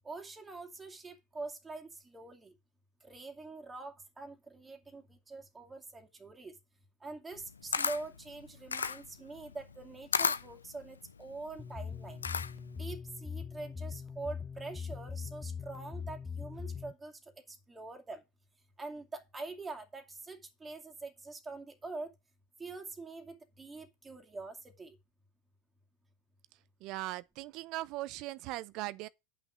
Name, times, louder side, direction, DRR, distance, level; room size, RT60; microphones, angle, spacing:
voice 1, 0.0-2.5 3.0-6.6 7.0-12.2 12.8-17.2 17.5-18.2 18.8-22.1 22.6-25.0, right 3 dB, 15° right, 2.5 m, -45 dB
Camera, 7.3-12.8, left 6 dB, 90° left, 0.6 m, -35 dB
sound 1, 11.6-16.9, left 6 dB, 15° left, 1.2 m, -41 dB
voice 2, 26.8-29.1, right 18 dB, 50° right, 0.6 m, -39 dB
8.8 x 5.9 x 6.2 m
hypercardioid pair, 90°, 0 cm